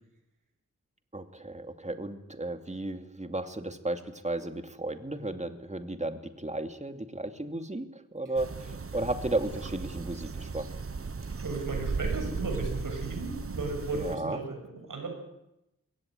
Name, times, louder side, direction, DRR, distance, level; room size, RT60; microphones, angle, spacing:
voice 1, 1.1-10.7 13.9-14.4, right 2 dB, 20° right, 8 dB, 2.5 m, -34 dB
sound 1, 8.4-14.2, right 4 dB, 45° right, 1.2 m, -36 dB
voice 2, 11.4-15.1, right 3 dB, 90° right, 3 dB, 6.8 m, -35 dB
22.0 x 17.5 x 9.5 m, 0.87 s
wide cardioid pair, 60°, 31 cm